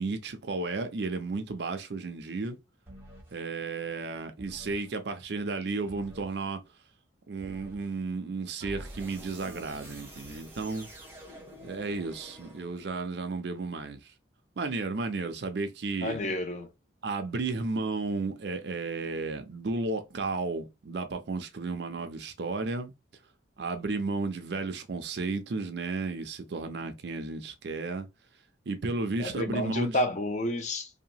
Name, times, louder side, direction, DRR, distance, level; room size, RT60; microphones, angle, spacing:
voice 1, 0.0-2.6 3.3-6.6 7.3-10.9 11.6-14.0 14.6-16.3 17.0-22.9 23.6-28.1 28.7-30.0, right 3 dB, 60° right, 0.5 m, -33 dB
sound 1, 2.9-3.4 4.4-4.9 5.9-6.4 7.4-7.9 8.6-13.0, right 1 dB, 10° right, 0.6 m, -47 dB
voice 2, 16.0-16.7 29.2-30.9, left 1 dB, 35° left, 0.4 m, -30 dB
2.7 x 2.2 x 2.7 m
head